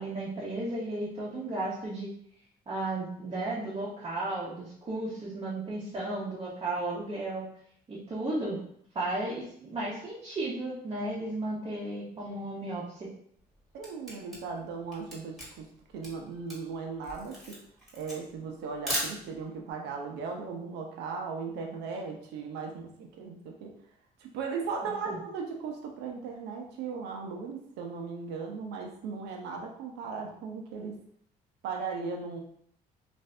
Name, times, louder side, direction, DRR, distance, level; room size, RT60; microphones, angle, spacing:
voice 1, 0.0-2.1 2.7-7.5 7.9-8.6 8.9-13.1 24.8-25.2, right 2 dB, 30° right, -6 dB, 0.8 m, -34 dB
Camera, 13.4-19.6, equal, ahead, 1.4 m, -38 dB
voice 2, 13.7-15.6 15.9-17.3 17.9-23.7 24.3-30.9 31.6-32.4, right 5 dB, 85° right, 1 dB, 0.7 m, -37 dB
2.6 x 2.5 x 3.2 m, 0.66 s
cardioid pair, 110°, 17 cm